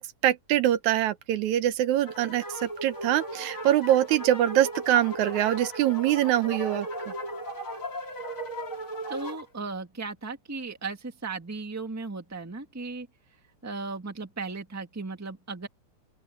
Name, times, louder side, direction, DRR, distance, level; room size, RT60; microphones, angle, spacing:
voice 1, 0.0-6.9, right 12 dB, 80° right, 2.1 m, -24 dB
sound 1, 2.0-9.4, right 1 dB, 25° left, 6.2 m, -36 dB
voice 2, 9.1-13.1 13.6-15.7, right 3 dB, 5° right, 1.3 m, -36 dB
open air
omnidirectional pair, 3.5 m